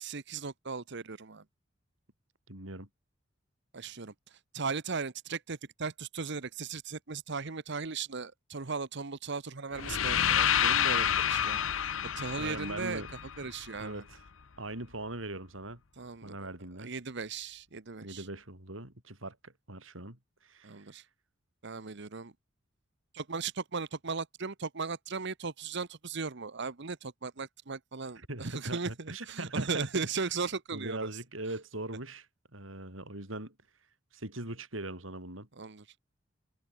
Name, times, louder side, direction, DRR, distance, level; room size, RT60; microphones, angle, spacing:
voice 1, 0.0-1.4 3.7-11.6 12.2-13.0 13.4-14.0 16.0-16.5 16.8-18.3 20.6-21.0 21.6-22.3 23.1-31.1 35.6-35.8, right 4 dB, 65° right, 1.1 m, -37 dB
voice 2, 2.5-2.9 12.4-13.1 13.8-14.2 14.6-15.8 16.2-16.9 18.0-20.9 28.3-29.9 30.7-32.3 32.5-33.5 34.1-35.5, right 2 dB, 85° right, 7.6 m, -41 dB
sound 1, 9.8-13.8, left 9 dB, 85° left, 0.9 m, -29 dB
head